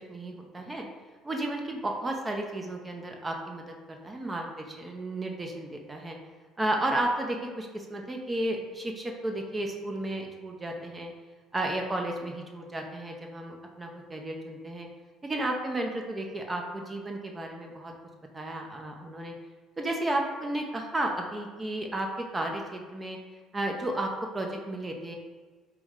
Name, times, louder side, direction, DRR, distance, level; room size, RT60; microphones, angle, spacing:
voice 1, 0.1-0.9 1.2-6.2 6.6-11.1 11.5-14.9 15.2-17.9 18.3-19.3 19.8-22.1 22.3-23.2 23.5-25.2, right 1 dB, 20° right, 2 dB, 0.5 m, -33 dB
4.4 x 2.1 x 3.6 m, 1.4 s
supercardioid pair, 75°, 0 cm